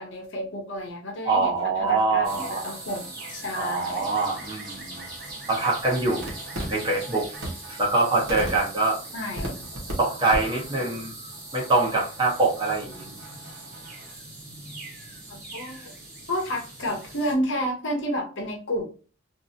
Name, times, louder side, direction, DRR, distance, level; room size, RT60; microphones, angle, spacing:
voice 1, 0.0-4.1 9.1-9.7 15.3-15.9 16.3-18.8, equal, 65° left, 2 dB, 0.8 m, -31 dB
voice 2, 1.2-2.7 3.6-5.1 5.5-6.3 6.7-7.3 7.7-9.0 10.0-11.1 11.5-13.1, right 3 dB, 25° right, -4 dB, 1.0 m, -24 dB
sound 1, 2.1-9.9 10.3-10.4 10.6-10.9 11.3-14.2, right 1 dB, 70° right, 1.1 m, -40 dB
sound 2, 2.2-17.3, right 2 dB, 50° right, 1.4 m, -41 dB
2.8 x 2.6 x 2.6 m, 0.36 s
head